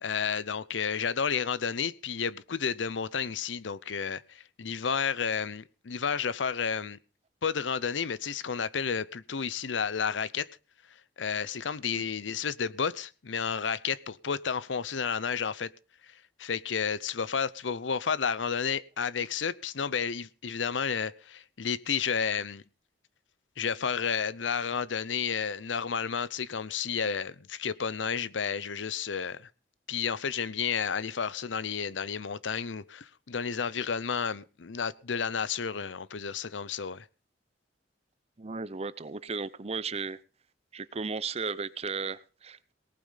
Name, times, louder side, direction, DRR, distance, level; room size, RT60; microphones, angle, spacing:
voice 1, 0.0-7.0 7.4-10.5 11.2-15.7 16.4-22.6 23.6-29.5 29.9-37.1, left 6 dB, 90° left, 0.7 m, -31 dB
voice 2, 38.4-40.2 40.7-42.7, right 4 dB, 35° right, 0.7 m, -35 dB
18.5 x 8.6 x 5.7 m
head